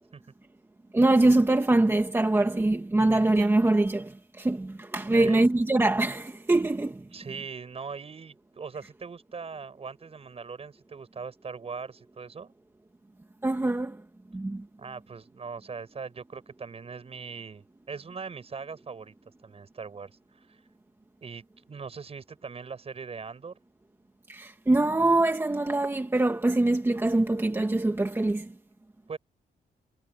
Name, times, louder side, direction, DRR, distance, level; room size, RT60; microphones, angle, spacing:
voice 1, 0.9-7.1 13.4-14.0 14.3-14.7 24.3-28.5, right 2 dB, 15° right, 1.8 m, -24 dB
voice 2, 5.1-5.4 7.1-12.5 14.8-19.1 19.4-20.6 21.2-23.5 29.1-29.2, right 5 dB, 40° right, 7.1 m, -40 dB
wide cardioid pair, 135°, 16 cm